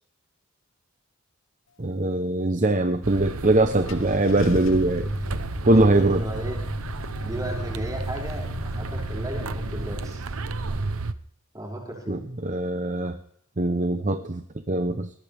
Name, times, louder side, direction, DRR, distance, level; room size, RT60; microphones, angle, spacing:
voice 1, 1.8-5.1 5.6-6.2 12.1-13.2 13.6-15.2, right 2 dB, 35° right, 8 dB, 0.9 m, -22 dB
sound 1, 3.0-11.1, right 3 dB, 75° right, 0.9 m, -32 dB
Car / Engine starting, 3.2-3.3 3.9-10.1, left 2 dB, 60° left, 1.1 m, -37 dB
voice 2, 5.7-6.6 7.2-10.2 11.5-12.2, right 1 dB, 15° right, -3 dB, 6.1 m, -35 dB
21.5 x 18.0 x 3.6 m, 0.64 s
head